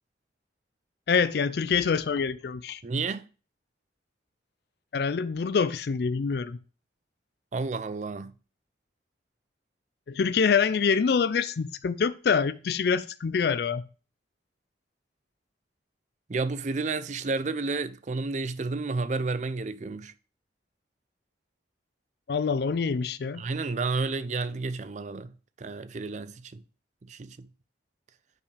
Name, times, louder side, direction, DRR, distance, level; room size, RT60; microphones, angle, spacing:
voice 1, 1.1-2.8 4.9-6.6 10.1-13.8 22.3-23.4, left 6 dB, 55° left, 0.4 m, -25 dB
voice 2, 2.8-3.3 7.5-8.3 16.3-20.1 23.4-25.3 25.6-26.6 27.0-27.5, right 3 dB, 40° right, 0.4 m, -31 dB
9.2 x 5.5 x 3.3 m
head